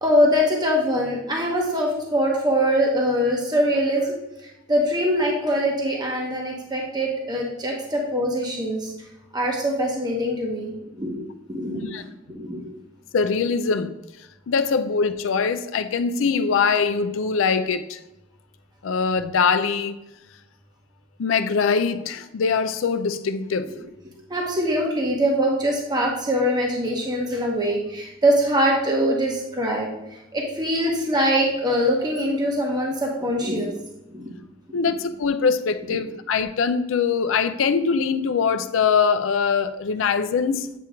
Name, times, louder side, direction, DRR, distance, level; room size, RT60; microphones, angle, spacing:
voice 1, 0.0-4.1 4.7-8.9 9.3-11.2 11.5-11.9 12.3-12.7 24.3-33.7 34.1-34.3, equal, 20° right, 0.9 m, -23 dB
voice 2, 11.7-12.0 13.1-14.0 14.5-18.0 18.8-20.0 21.2-23.7 34.7-40.7, left 5 dB, 75° left, 0.4 m, -22 dB
8.3 x 3.0 x 4.9 m
head